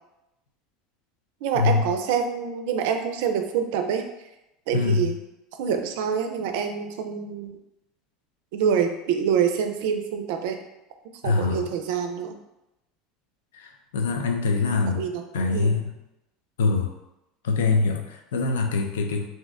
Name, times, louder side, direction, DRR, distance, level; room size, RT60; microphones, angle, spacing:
voice 1, 1.4-4.1 4.7-5.1 5.6-7.6 8.5-10.6 11.2-12.4 14.9-15.8, right 7 dB, 70° right, 6 dB, 0.4 m, -26 dB
voice 2, 4.7-5.1 11.2-11.7 13.5-15.0 15.3-15.9 16.6-16.9 17.4-19.3, left 4 dB, 85° left, 4 dB, 0.4 m, -24 dB
2.7 x 2.1 x 3.5 m, 0.91 s
hypercardioid pair, 90°, 0 cm